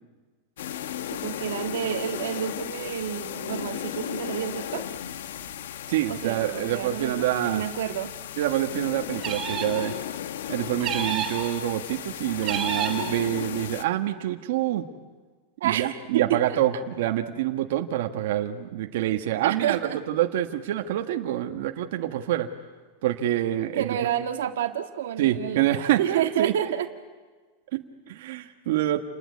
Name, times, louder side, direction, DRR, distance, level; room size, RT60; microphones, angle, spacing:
sound 1, 0.6-13.8, left 10 dB, 80° left, 1.2 m, -35 dB
voice 1, 1.1-5.0 6.1-8.1 15.6-16.8 19.4-20.0 23.7-26.9, right 10 dB, 80° right, 6 dB, 1.7 m, -29 dB
voice 2, 5.9-7.6 8.4-9.9 10.5-14.9 15.6-19.8 20.1-22.5 23.0-24.0 25.2-26.5 27.7-29.0, right 13 dB, 60° right, 4 dB, 1.6 m, -26 dB
sound 2, 9.2-9.9 10.8-11.5 12.4-13.1, right 8 dB, 25° right, 4.9 m, -29 dB
28.5 x 20.0 x 9.5 m, 1.4 s
supercardioid pair, 165°, 0 cm